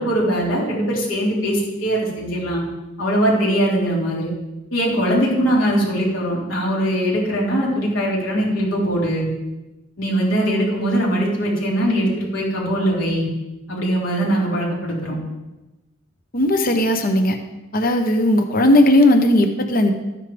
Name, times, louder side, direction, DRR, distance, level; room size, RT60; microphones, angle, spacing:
voice 1, 0.0-2.6 3.0-4.3 4.7-9.3 10.0-13.3 13.7-15.2, right 1 dB, 80° left, -5 dB, 4.1 m, -21 dB
voice 2, 16.3-17.4 17.7-19.9, left 1 dB, 45° left, 5 dB, 1.0 m, -16 dB
14.0 x 9.7 x 3.5 m, 1.0 s
head